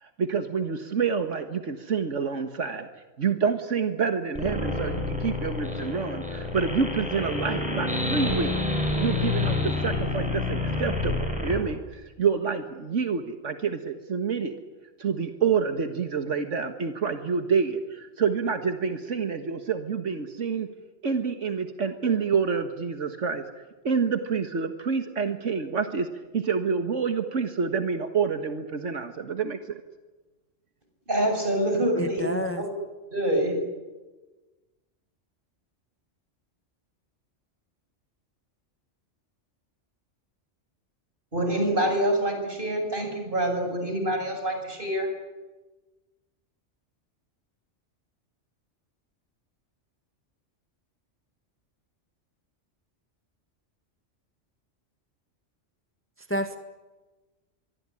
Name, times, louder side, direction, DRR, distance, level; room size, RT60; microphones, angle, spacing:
voice 1, 0.0-2.9 3.2-14.6 15.0-20.7 21.0-23.4 23.8-26.1 26.3-29.8, right 5 dB, 80° right, 7 dB, 1.9 m, -28 dB
sound 1, 4.4-11.6, left 2 dB, 5° right, 8.0 m, -28 dB
voice 2, 31.1-32.7 33.1-33.6 41.3-45.1, right 1 dB, 45° right, 4 dB, 7.5 m, -26 dB
voice 3, 32.0-32.6 56.3-56.6, left 1 dB, 10° left, 7 dB, 1.6 m, -28 dB
24.5 x 24.0 x 9.9 m, 1.2 s
omnidirectional pair, 1.2 m